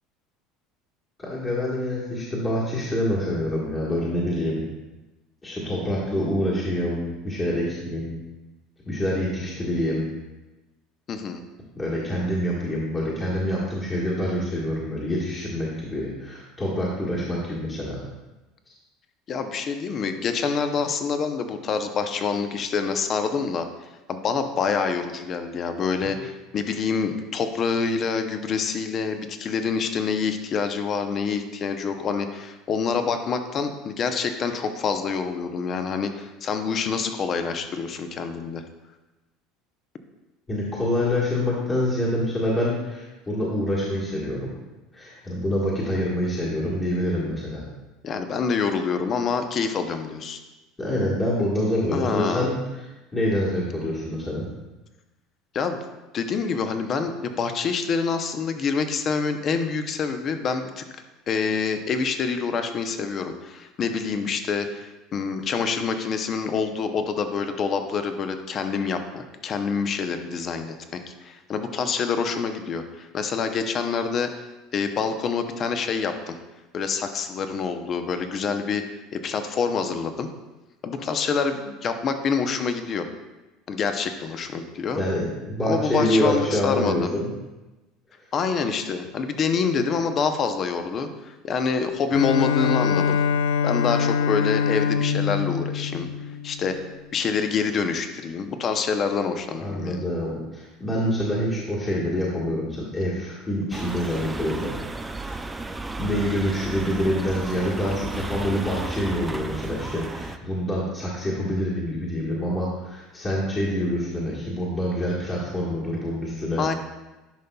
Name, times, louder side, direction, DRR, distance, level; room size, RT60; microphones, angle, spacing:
voice 1, 1.2-4.6 5.4-8.1 8.8-10.1 11.8-18.0 40.5-44.5 44.9-47.6 50.8-52.6 53.1-54.5 85.0-87.3 99.6-105.3 106.0-116.6, left 1 dB, 20° left, -6 dB, 1.5 m, -26 dB
voice 2, 11.1-11.4 19.3-23.7 24.1-38.6 48.0-50.4 51.9-52.5 55.5-55.8 56.1-60.8 61.3-74.3 74.7-76.3 76.7-78.8 79.1-80.3 80.8-83.1 83.7-85.0 85.7-87.1 88.3-93.2 93.6-96.1 96.4-96.8 97.1-100.1 116.6-116.7, left 5 dB, 40° left, 7 dB, 0.7 m, -26 dB
Bowed string instrument, 92.1-96.8, left 7 dB, 80° left, 0.3 m, -24 dB
sound 1, 103.7-110.4, right 2 dB, 10° right, 0.4 m, -33 dB
10.5 x 5.3 x 2.3 m, 1.1 s
supercardioid pair, 115°, 0 cm